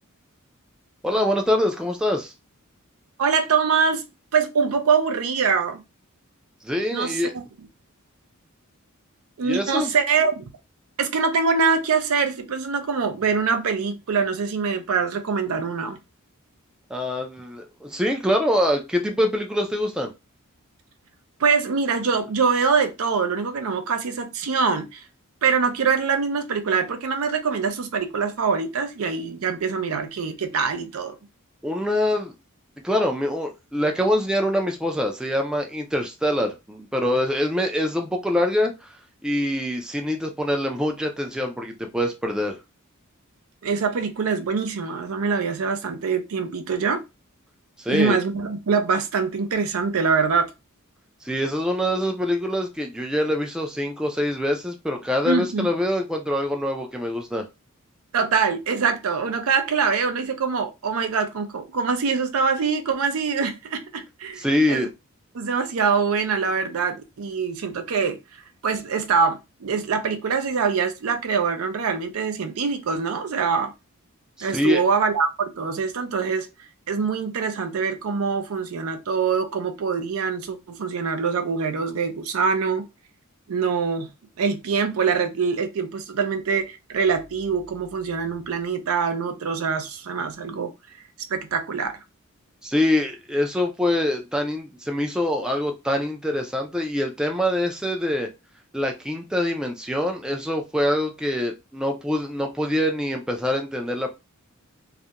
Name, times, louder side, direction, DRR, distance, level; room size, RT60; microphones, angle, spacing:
voice 1, 1.0-2.3 6.6-7.3 9.4-9.9 16.9-20.1 31.6-32.3 32.8-38.7 39.2-42.6 47.8-48.2 51.2-57.5 64.4-64.9 74.4-74.8 92.6-98.3 98.7-104.1, left 1 dB, 5° right, 0.3 m, -24 dB
voice 2, 3.2-4.0 4.3-5.8 6.9-7.4 9.4-10.5 11.0-16.0 21.4-25.0 25.4-31.2 43.6-47.0 47.9-50.5 55.3-55.7 58.1-64.9 65.3-68.2 68.6-73.7 74.4-76.5 76.9-82.8 83.5-84.1 84.4-90.7 91.3-92.0, right 5 dB, 80° right, 0.5 m, -24 dB
2.4 x 2.1 x 2.8 m
head